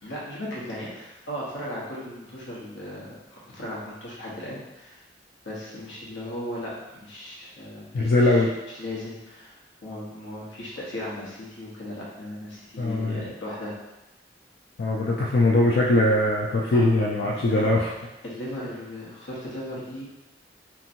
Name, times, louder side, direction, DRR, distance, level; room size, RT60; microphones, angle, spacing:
voice 1, 0.0-3.1 3.5-5.0 5.4-8.4 8.8-9.6 9.8-13.7 16.7-16.8 17.3-17.7 18.2-20.0, left 1 dB, 90° left, -6 dB, 1.0 m, -37 dB
voice 2, 7.9-8.5 12.8-13.2 14.8-17.9, left 2 dB, 60° left, -3 dB, 0.3 m, -21 dB
2.9 x 2.7 x 2.6 m, 1.0 s
head